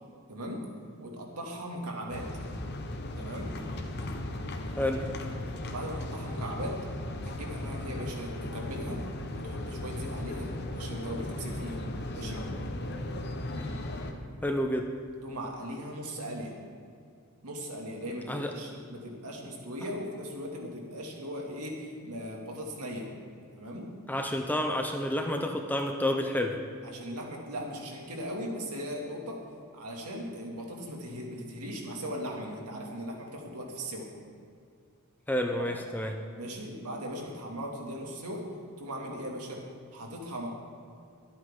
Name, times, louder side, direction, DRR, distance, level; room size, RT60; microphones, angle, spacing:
voice 1, 0.3-0.6 1.0-2.3 3.2-3.5 5.7-6.8 7.2-9.0 9.3-11.8 12.1-12.5 15.2-16.6 17.4-23.1 23.5-23.9 26.8-29.4 29.7-34.1 35.6-35.7 36.3-38.4 38.8-39.6 39.9-40.5, equal, 90° right, 0 dB, 2.4 m, -38 dB
sound 1, 2.1-14.1, left 1 dB, 50° left, 1.1 m, -36 dB
voice 2, 4.8-5.1 14.4-14.9 18.3-18.5 24.1-26.6 35.3-36.2, left 1 dB, 10° left, 3 dB, 0.6 m, -29 dB
23.5 x 8.7 x 3.8 m, 2.3 s
head